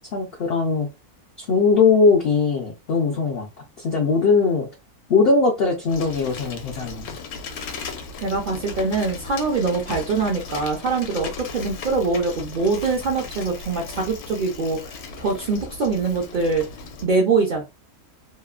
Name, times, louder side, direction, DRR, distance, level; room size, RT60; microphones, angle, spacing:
voice 1, 0.1-0.9 1.5-3.5 3.8-4.7 5.1-7.1, left 4 dB, 70° left, 0.5 m, -20 dB
Bicycle, 5.9-17.0, left 4 dB, 85° left, 1.1 m, -37 dB
voice 2, 8.2-14.9 15.2-16.6 17.0-17.6, right 4 dB, 65° right, 0.5 m, -23 dB
3.0 x 2.1 x 2.3 m
omnidirectional pair, 1.6 m